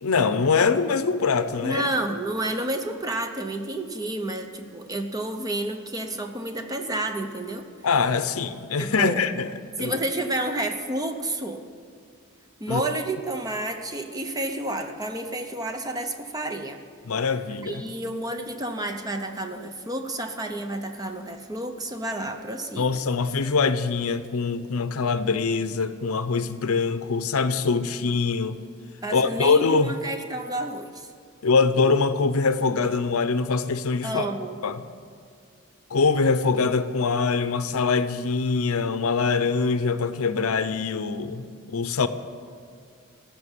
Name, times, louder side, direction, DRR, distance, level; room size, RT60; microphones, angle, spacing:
voice 1, 0.0-1.9 7.8-9.5 9.8-10.0 12.7-12.8 17.1-17.8 22.8-28.6 29.1-29.9 31.4-34.3 34.6-34.8 35.9-42.1, left 4 dB, 85° left, 0.7 m, -23 dB
voice 2, 1.6-7.6 8.8-9.2 9.8-11.6 12.6-16.8 17.6-23.0 29.0-31.1 34.0-34.6, right 1 dB, 15° right, 0.8 m, -30 dB
14.5 x 6.1 x 9.9 m
head